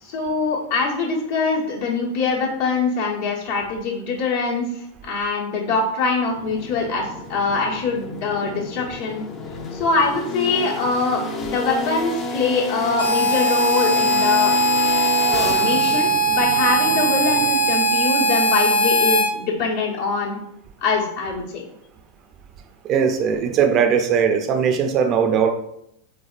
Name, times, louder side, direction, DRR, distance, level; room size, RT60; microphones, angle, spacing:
voice 1, 0.0-4.7 5.0-9.2 9.7-15.0 15.4-20.4 20.8-21.6, left 3 dB, 65° left, -4 dB, 1.1 m, -23 dB
sound 1, 6.3-18.1, left 3 dB, 30° left, 0.5 m, -30 dB
Harmonica, 13.0-19.3, right 1 dB, 80° left, 0.4 m, -19 dB
voice 2, 22.8-25.5, right 7 dB, 40° right, 6 dB, 0.5 m, -19 dB
3.6 x 3.3 x 2.4 m, 0.75 s
figure-of-eight pair, 90°, 0 cm